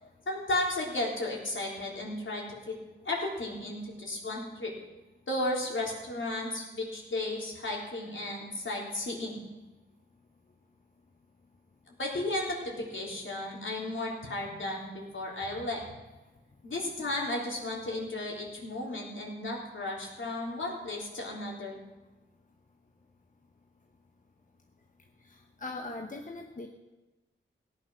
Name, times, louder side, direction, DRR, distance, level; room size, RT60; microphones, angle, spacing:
voice 1, 0.3-2.8 3.0-4.7 5.3-9.4 11.9-15.8 16.6-21.8, left 1 dB, 70° left, -2 dB, 3.6 m, -34 dB
voice 2, 25.2-26.7, left 2 dB, 40° left, 2 dB, 1.1 m, -41 dB
17.0 x 9.1 x 6.3 m, 1.1 s
wide cardioid pair, 115°, 21 cm